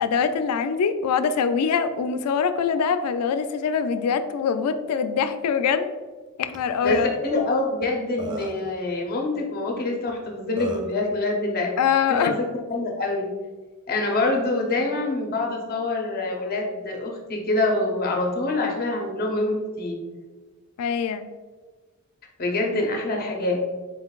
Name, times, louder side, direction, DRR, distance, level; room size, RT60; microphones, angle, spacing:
voice 1, 0.0-5.9 6.4-7.1 11.8-12.4 20.8-21.2, left 6 dB, 85° left, 10 dB, 0.3 m, -23 dB
Burping eructation, 6.5-6.6 6.9-7.1 7.8-7.9 8.2-8.7 10.1-10.2 10.6-10.9, right 1 dB, 20° right, 0.3 m, -34 dB
voice 2, 6.8-11.8 12.1-12.4 12.7-13.3 13.9-20.0 22.4-23.6, left 2 dB, 40° left, 1 dB, 0.6 m, -25 dB
4.0 x 3.8 x 2.3 m, 1.3 s
head